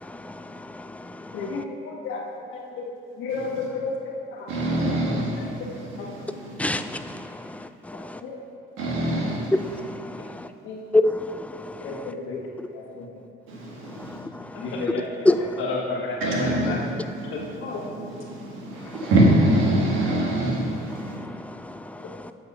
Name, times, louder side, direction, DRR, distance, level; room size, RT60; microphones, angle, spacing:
voice 1, 0.0-1.6 6.6-8.2 9.5-10.5 10.9-12.1 14.0-14.8 15.2-15.6 18.9-19.1 20.9-22.3, left 1 dB, 5° left, 10 dB, 0.3 m, -28 dB
voice 2, 1.3-2.2 2.5-2.9 3.2-3.9 4.3-4.5 4.8-5.0 5.4-5.7 8.2-8.4 10.6-10.8 11.8-12.4 12.7-13.1 14.5-15.1 15.6-16.8 17.3-17.8, left 4 dB, 85° left, -2 dB, 1.5 m, -31 dB
voice 3, 3.3-3.7 4.5-6.9 8.8-9.5 13.5-14.2 16.2-21.2, right 1 dB, 90° right, -3 dB, 1.8 m, -25 dB
7.9 x 5.8 x 5.6 m, 2.7 s
cardioid pair, 90°, 20 cm